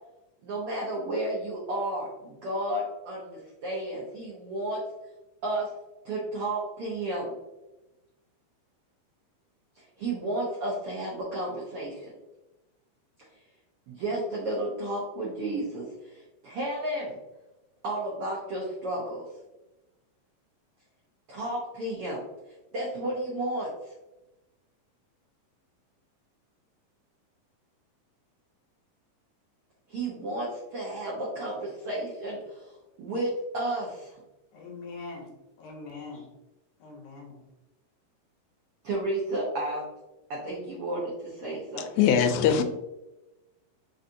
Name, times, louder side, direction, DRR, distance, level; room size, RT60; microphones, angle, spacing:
voice 1, 0.4-4.8 5.4-5.7 6.0-7.3 9.7-12.1 13.9-17.2 17.8-19.2 21.3-22.2 22.7-23.9 29.9-34.2 38.8-39.8 40.3-42.0, right 1 dB, 85° right, -4 dB, 1.2 m, -32 dB
voice 2, 34.5-35.3 35.6-36.3 36.8-37.4, left 3 dB, 70° left, 0 dB, 2.1 m, -42 dB
voice 3, 42.0-42.6, left 8 dB, 85° left, 7 dB, 2.3 m, -21 dB
4.9 x 4.1 x 2.6 m, 0.99 s
omnidirectional pair, 4.0 m